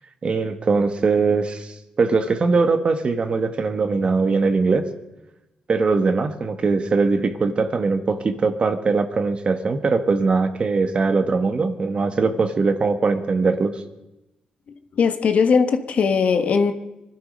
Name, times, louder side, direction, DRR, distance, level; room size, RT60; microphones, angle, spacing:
voice 1, 0.2-4.9 5.7-13.8, right 4 dB, 45° right, 1.4 m, -21 dB
voice 2, 14.9-16.7, left 5 dB, 60° left, 1.3 m, -19 dB
22.5 x 12.0 x 5.2 m
cardioid pair, 85°, 3 cm